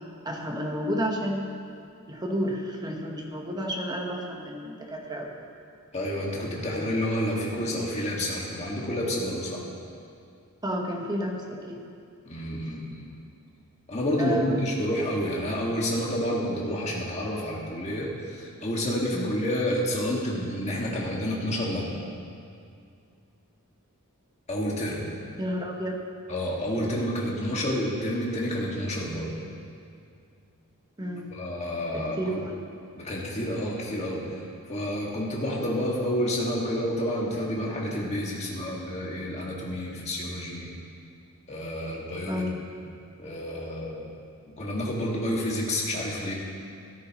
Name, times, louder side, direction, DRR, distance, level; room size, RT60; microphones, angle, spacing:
voice 1, 0.2-1.5 2.1-5.3 10.6-11.8 14.2-14.6 19.1-19.3 25.4-25.9 31.0-31.3 31.9-32.5 42.3-42.5, equal, 20° right, 0 dB, 1.2 m, -31 dB
voice 2, 5.9-9.6 12.2-13.1 13.9-22.0 24.5-25.1 26.3-29.4 31.3-32.4 33.0-34.4 34.7-40.7 41.5-42.5 43.2-44.1 44.6-46.3, equal, 30° left, -3 dB, 1.9 m, -29 dB
14.0 x 13.0 x 3.1 m, 2.4 s
head